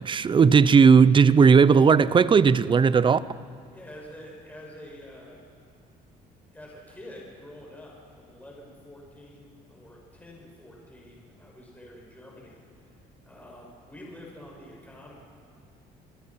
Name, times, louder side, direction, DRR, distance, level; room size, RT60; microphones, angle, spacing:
voice 1, 0.0-3.2, right 6 dB, 30° right, 0.6 m, -17 dB
voice 2, 3.7-5.4 6.5-13.0 13.2-15.4, left 1 dB, 10° left, 6.8 m, -47 dB
28.5 x 20.0 x 6.0 m
cardioid pair, 110°, 17 cm